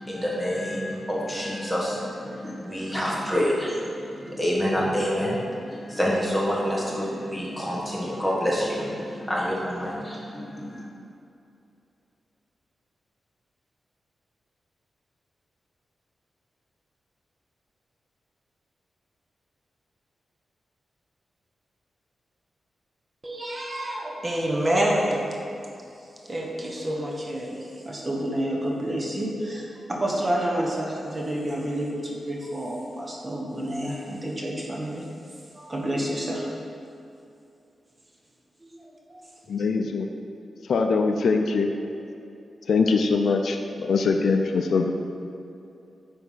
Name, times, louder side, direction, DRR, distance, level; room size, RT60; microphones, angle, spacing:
voice 1, 0.0-10.9, equal, ahead, -6 dB, 1.6 m, -27 dB
voice 2, 23.2-25.2 26.3-35.1 35.5-36.5 38.6-39.3, right 1 dB, 25° right, -2 dB, 1.0 m, -29 dB
voice 3, 39.5-40.1 40.7-41.7 42.7-44.9, left 4 dB, 70° left, 4 dB, 0.5 m, -22 dB
9.2 x 3.5 x 5.6 m, 2.6 s
wide cardioid pair, 140°, 0 cm